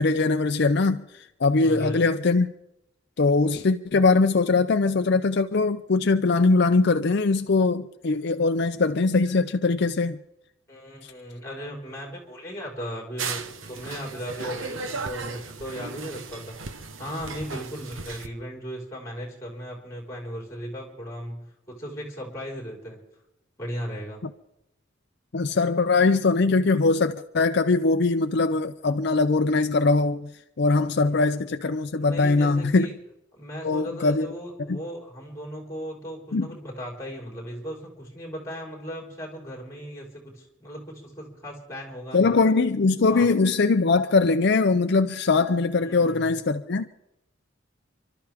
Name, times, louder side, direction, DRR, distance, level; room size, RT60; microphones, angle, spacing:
voice 1, 0.0-2.5 3.2-10.2 11.0-11.1 25.3-30.3 30.6-32.9 33.6-34.3 34.7-34.8 36.3-36.5 42.1-46.9, left 3 dB, 55° left, 0.5 m, -21 dB
voice 2, 1.6-2.1 10.7-23.0 23.6-24.2 31.1-31.4 31.9-32.9 33.3-42.3 43.1-43.3 45.8-46.3, equal, 15° left, 4.6 m, -37 dB
sound 1, 13.2-18.3, right 4 dB, 85° right, 1.1 m, -36 dB
29.5 x 12.5 x 3.5 m
head